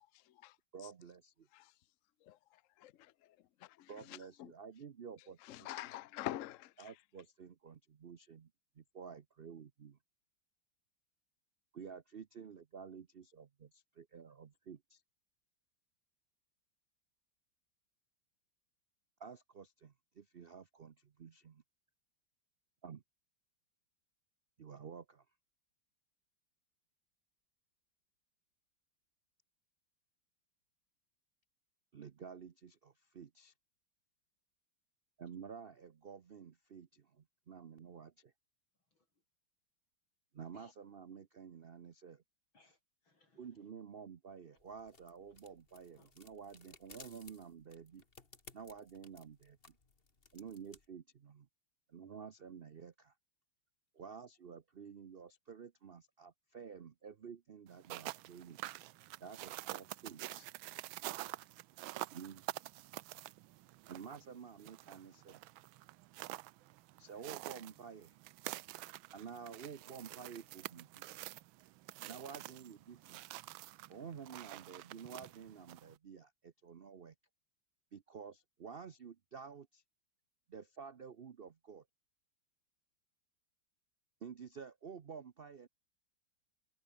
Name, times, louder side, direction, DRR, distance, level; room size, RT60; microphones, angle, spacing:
voice 1, 0.7-1.3 3.9-5.7 6.8-8.5 8.8-10.0 11.7-15.0 19.2-21.6 22.8-23.0 24.6-25.2 31.9-33.5 35.2-38.3 40.3-42.2 43.4-48.0 48.5-49.8 50.3-51.5 51.9-53.1 53.9-58.6 59.2-60.5 62.1-62.4 63.9-65.4 67.0-68.2 69.1-71.0 72.0-73.2 73.9-77.1 77.9-79.8 80.5-81.8 84.2-85.7, right 6 dB, 70° right, 0.5 m, -51 dB
voice 2, 3.6-4.5 5.4-6.9, left 14 dB, 65° left, 0.8 m, -45 dB
voice 3, 38.9-39.2 40.5-40.7 42.5-43.7 45.7-46.1, left 3 dB, 90° left, 7.4 m, -68 dB
sound 1, 44.6-50.9, left 4 dB, 30° left, 2.1 m, -60 dB
sound 2, 57.7-76.0, right 16 dB, 85° right, 1.4 m, -48 dB
omnidirectional pair, 2.1 m